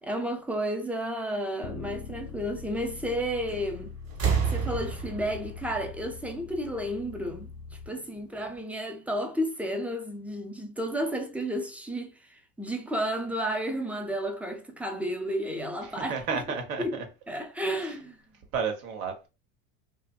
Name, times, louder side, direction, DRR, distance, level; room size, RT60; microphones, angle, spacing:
voice 1, 0.0-3.9 4.5-7.5 7.9-16.4 16.8-17.0 17.3-18.2, equal, 5° right, 0.3 m, -32 dB
Bass guitar, 1.6-7.9, left 6 dB, 85° left, 0.7 m, -43 dB
sound 1, 3.5-3.8 4.1-6.8 8.0-8.1, right 6 dB, 40° right, 1.2 m, -30 dB
voice 2, 15.8-17.0 17.8-18.0 18.5-19.3, right 6 dB, 80° right, 1.0 m, -32 dB
2.6 x 2.4 x 2.2 m
hypercardioid pair, 85°, 42 cm